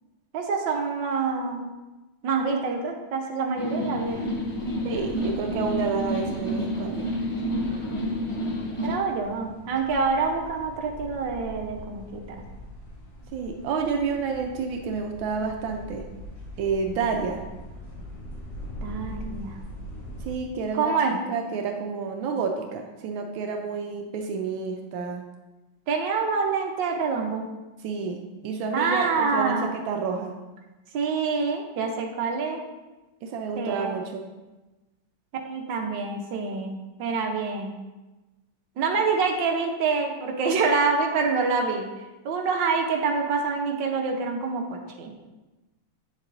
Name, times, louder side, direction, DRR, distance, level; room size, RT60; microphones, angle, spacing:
voice 1, 0.3-1.7 2.2-4.3 8.8-12.4 18.8-19.6 20.7-21.2 25.9-27.5 28.7-29.7 30.9-32.6 33.6-33.9 35.4-37.7 38.8-41.9 42.2-45.1, right 4 dB, 75° right, 1 dB, 1.6 m, -26 dB
sound 1, 3.6-9.0, equal, 40° left, 0.4 m, -29 dB
sound 2, 4.0-20.3, equal, 65° left, 3.2 m, -42 dB
voice 2, 4.8-7.1 13.3-16.1 16.6-17.4 20.2-25.2 27.8-30.3 33.2-34.2, right 5 dB, 90° right, 3 dB, 1.5 m, -29 dB
8.3 x 7.2 x 2.6 m, 1.1 s
omnidirectional pair, 2.1 m